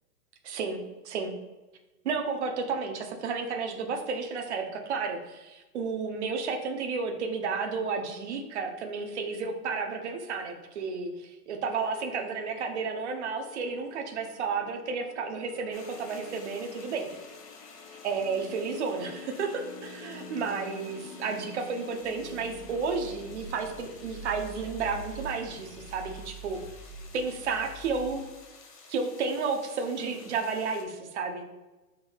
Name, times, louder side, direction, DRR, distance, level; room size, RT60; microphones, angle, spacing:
voice 1, 0.4-0.8 1.0-1.3 2.0-17.1 18.0-26.6 27.1-28.2 28.9-31.4, right 5 dB, 45° right, 3 dB, 0.8 m, -32 dB
sound 1, 11.6-28.2, left 2 dB, 45° left, 0.7 m, -46 dB
sound 2, 15.7-30.8, left 4 dB, 80° left, 1.4 m, -52 dB
6.1 x 3.7 x 2.3 m, 1.1 s
hypercardioid pair, 160°, 47 cm